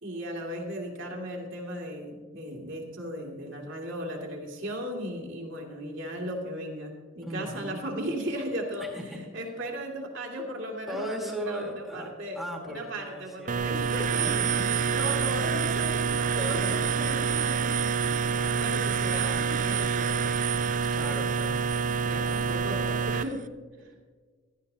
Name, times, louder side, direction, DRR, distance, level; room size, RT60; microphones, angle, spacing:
voice 1, 0.0-8.9 9.3-14.3 14.6-17.7 18.0-20.2 22.0-23.4 23.8-23.9, equal, 60° right, 0 dB, 2.3 m, -36 dB
voice 2, 7.2-7.8 8.8-9.2 10.9-13.8 16.3-16.9 20.9-21.6, equal, ahead, -1 dB, 1.6 m, -38 dB
sound 1, 13.5-23.2, right 6 dB, 35° right, 0.3 m, -27 dB
15.5 x 13.0 x 2.8 m, 1.5 s
head